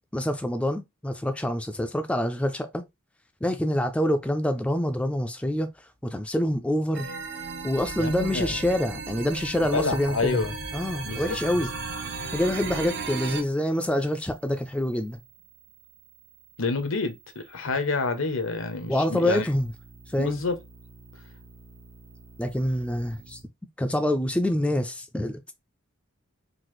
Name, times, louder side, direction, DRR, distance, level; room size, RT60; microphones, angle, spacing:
voice 1, 0.1-2.8 3.4-5.7 6.0-7.1 7.6-10.4 10.7-11.7 12.3-15.2 18.9-19.7 20.1-20.5 22.4-23.4 23.8-25.5, left 1 dB, 5° left, 0.3 m, -26 dB
sound 1, 6.9-13.4, right 4 dB, 60° right, 0.6 m, -35 dB
voice 2, 8.0-8.6 9.7-10.5 11.0-11.4 16.6-19.5 20.2-20.6, left 3 dB, 80° left, 0.8 m, -28 dB
sound 2, 10.2-23.4, right 4 dB, 85° right, 1.0 m, -55 dB
3.9 x 2.5 x 3.0 m
head